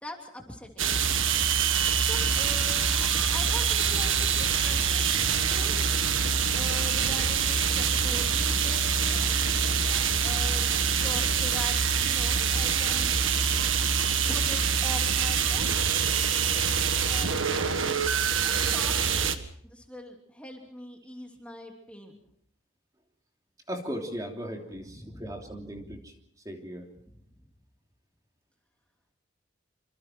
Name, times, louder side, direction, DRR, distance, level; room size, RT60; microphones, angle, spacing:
voice 1, 0.0-1.3 2.0-2.9 3.3-5.8 6.5-9.4 10.2-13.1 14.3-15.8 16.9-17.3 18.4-19.2 19.6-22.2 24.7-26.0 27.1-27.2, left 1 dB, 5° left, 1 dB, 2.9 m, -43 dB
sound 1, 0.8-19.4, right 6 dB, 80° right, 1.7 m, -25 dB
voice 2, 23.7-26.0 26.4-26.9, equal, 20° right, 1 dB, 3.1 m, -37 dB
27.0 x 26.0 x 4.6 m, 0.66 s
head